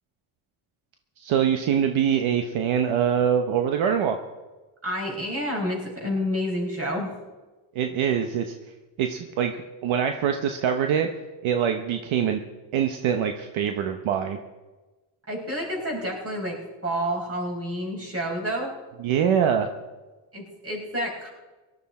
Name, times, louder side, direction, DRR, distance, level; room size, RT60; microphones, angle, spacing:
voice 1, 1.2-4.2 7.7-8.5 9.0-11.1 11.4-12.4 12.7-14.4 19.0-19.7, right 8 dB, 70° right, 5 dB, 1.1 m, -24 dB
voice 2, 4.8-7.1 15.3-16.6 16.8-18.8 20.3-21.3, equal, 30° right, -1 dB, 5.3 m, -29 dB
18.0 x 12.5 x 4.3 m, 1.2 s
cardioid pair, 90°, 50 cm